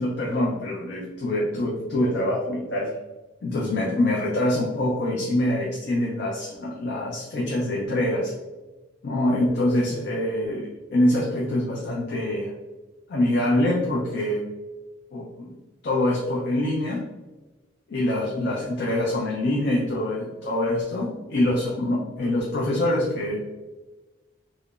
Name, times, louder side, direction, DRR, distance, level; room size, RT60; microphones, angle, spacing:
voice 1, 0.0-3.0 3.4-8.3 9.0-12.5 13.1-14.5 15.1-15.6 15.8-17.0 17.9-23.5, left 1 dB, 55° left, -3 dB, 0.4 m, -25 dB
2.8 x 2.1 x 2.3 m, 1.2 s
head